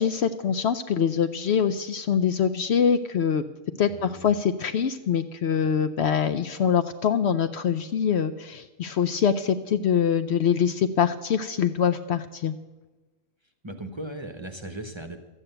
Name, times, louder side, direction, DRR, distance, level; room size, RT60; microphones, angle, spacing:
voice 1, 0.0-3.4 3.8-12.6, left 7 dB, 65° left, 10 dB, 0.8 m, -24 dB
voice 2, 3.9-4.3 13.6-15.2, right 1 dB, 25° right, 6 dB, 0.8 m, -37 dB
13.0 x 8.9 x 7.8 m, 1.2 s
omnidirectional pair, 1.4 m